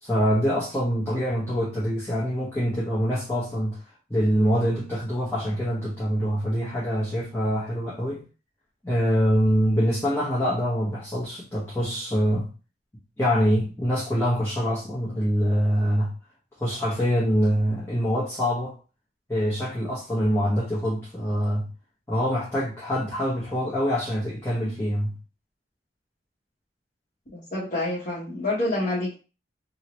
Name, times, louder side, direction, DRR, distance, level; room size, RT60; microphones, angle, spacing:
voice 1, 0.0-3.8 4.1-8.2 8.8-12.5 13.2-16.1 16.6-18.7 19.3-21.7 22.1-25.2, equal, 15° left, 0.9 m, -25 dB
voice 2, 27.3-29.1, left 2 dB, 45° left, 1.0 m, -27 dB
2.9 x 2.8 x 3.0 m
head